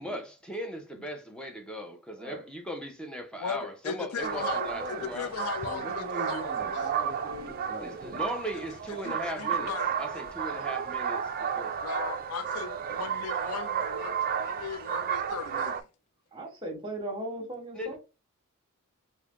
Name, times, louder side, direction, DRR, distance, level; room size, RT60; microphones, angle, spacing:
voice 1, 0.0-5.4 7.8-11.8 17.7-18.0, equal, 5° left, 0.6 m, -38 dB
voice 2, 3.4-7.0 8.5-8.6 9.0-10.2 11.8-15.9, left 7 dB, 80° left, 0.4 m, -38 dB
sound 1, 4.2-15.8, right 7 dB, 40° right, 0.3 m, -32 dB
voice 3, 4.6-5.3 5.6-8.3 16.3-18.0, right 1 dB, 20° right, 1.2 m, -39 dB
3.2 x 2.2 x 3.6 m
head